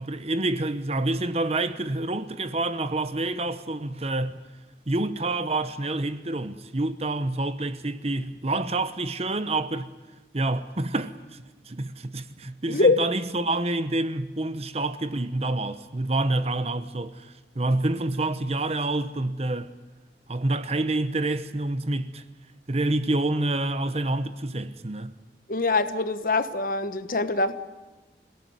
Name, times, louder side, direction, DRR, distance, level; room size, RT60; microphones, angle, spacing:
voice 1, 0.0-4.4 4.9-9.9 10.3-19.7 20.3-22.2 22.7-25.1, right 2 dB, 35° right, 0.9 m, -28 dB
voice 2, 12.7-13.0 25.5-27.5, left 3 dB, 50° left, 1.2 m, -23 dB
27.5 x 17.5 x 9.5 m
head